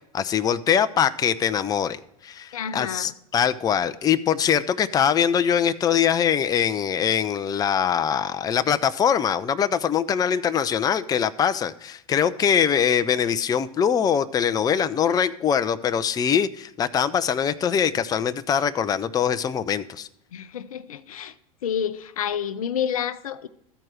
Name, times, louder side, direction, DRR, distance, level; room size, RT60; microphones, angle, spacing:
voice 1, 0.1-20.1, left 8 dB, 20° left, 0.4 m, -23 dB
voice 2, 2.5-3.1 20.3-21.3 21.6-23.5, left 8 dB, 80° left, 0.6 m, -29 dB
13.0 x 4.6 x 5.9 m
hypercardioid pair, 85°, 18 cm